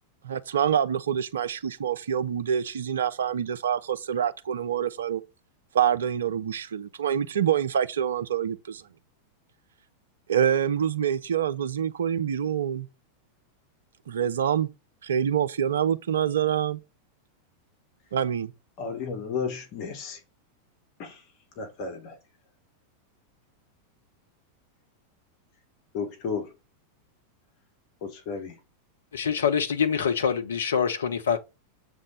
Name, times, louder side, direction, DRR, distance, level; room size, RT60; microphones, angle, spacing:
voice 1, 0.2-5.2 5.7-8.8 10.3-12.9 14.1-14.7 15.0-16.8 18.1-18.5, right 8 dB, 65° right, 0.6 m, -26 dB
voice 2, 18.8-20.2 21.0-21.2 21.6-22.2 25.9-26.5 28.0-28.6, left 5 dB, 45° left, 1.9 m, -33 dB
voice 3, 29.1-31.4, left 7 dB, 65° left, 1.0 m, -25 dB
7.5 x 3.6 x 5.2 m
figure-of-eight pair, 90°, 0 cm